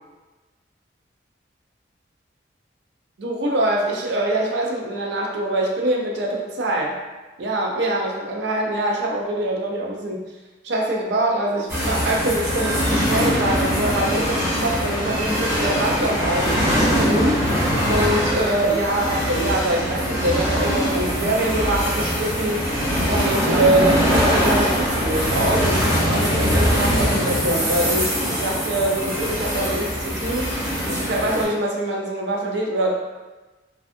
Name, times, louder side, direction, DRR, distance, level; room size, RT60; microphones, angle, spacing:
voice 1, 3.2-6.9 7.4-10.2 10.6-17.4 17.9-22.6 23.1-30.4 30.9-32.9, right 1 dB, 70° right, -1 dB, 0.4 m, -24 dB
sound 1, 11.7-31.4, equal, 15° right, 0.6 m, -22 dB
2.5 x 2.3 x 2.5 m, 1.2 s
head